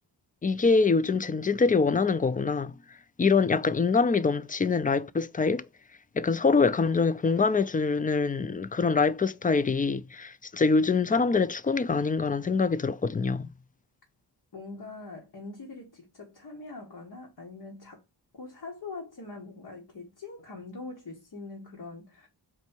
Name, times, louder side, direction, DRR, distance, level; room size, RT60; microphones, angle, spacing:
voice 1, 0.4-2.7 3.2-5.7 6.2-13.5, left 4 dB, 20° left, 0.4 m, -24 dB
voice 2, 14.5-18.0 18.3-22.3, left 3 dB, 60° left, 1.7 m, -43 dB
4.4 x 2.7 x 4.4 m
cardioid pair, 55°, 42 cm